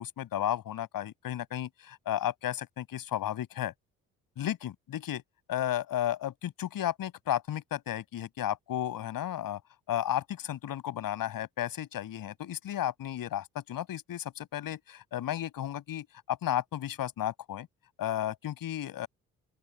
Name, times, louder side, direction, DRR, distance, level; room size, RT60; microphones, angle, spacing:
voice 1, 0.0-3.7 4.4-5.2 5.5-9.6 9.9-17.7 18.0-19.1, left 11 dB, 50° left, 7.1 m, -33 dB
open air
figure-of-eight pair, 45°, 42 cm